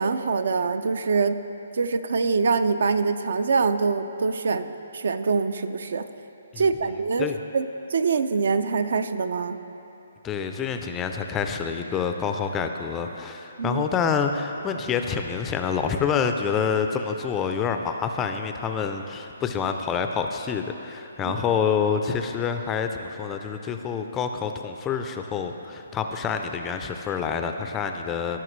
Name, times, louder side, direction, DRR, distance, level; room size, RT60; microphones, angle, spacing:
voice 1, 0.0-1.4 1.7-6.1 6.6-7.7 7.9-9.6 13.6-13.8 21.2-21.3, right 4 dB, 65° right, 11 dB, 0.4 m, -24 dB
voice 2, 10.2-28.4, left 6 dB, 15° left, 5 dB, 0.3 m, -27 dB
16.0 x 5.9 x 3.1 m, 2.9 s
hypercardioid pair, 165°, 0 cm